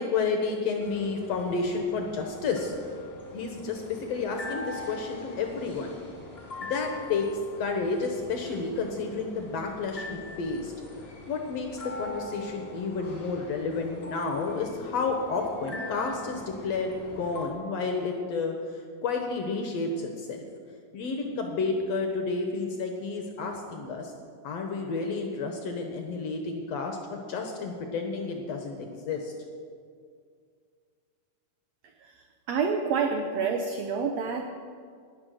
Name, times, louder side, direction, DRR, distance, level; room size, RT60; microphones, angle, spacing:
voice 1, 0.0-2.7 3.3-5.9 6.6-7.3 7.6-10.7 11.3-11.7 12.0-20.4 20.9-24.1 24.4-29.3, left 4 dB, 65° left, 3 dB, 1.7 m, -31 dB
sound 1, 0.8-17.5, left 2 dB, 25° left, 2.2 m, -42 dB
voice 2, 31.8-34.5, right 5 dB, 80° right, 5 dB, 1.5 m, -29 dB
19.0 x 6.6 x 6.4 m, 2.2 s
omnidirectional pair, 3.9 m